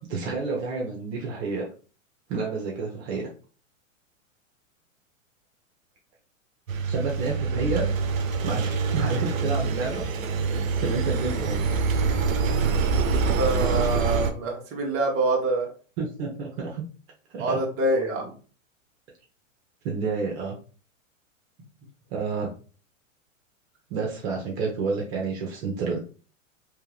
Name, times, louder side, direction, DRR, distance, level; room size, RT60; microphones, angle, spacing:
voice 1, 0.1-1.7 2.3-3.3 6.8-7.9 8.4-10.0 10.8-11.6 16.0-16.8 17.3-17.6 19.8-20.6 22.1-22.5 23.9-26.0, right 4 dB, 55° right, -1 dB, 1.1 m, -29 dB
Engine, 6.7-14.3, right 5 dB, 85° right, 0.7 m, -25 dB
voice 2, 13.3-15.7 17.4-18.3, right 2 dB, 35° right, 0 dB, 1.3 m, -26 dB
3.6 x 2.9 x 3.3 m, 0.38 s
hypercardioid pair, 105°, 39 cm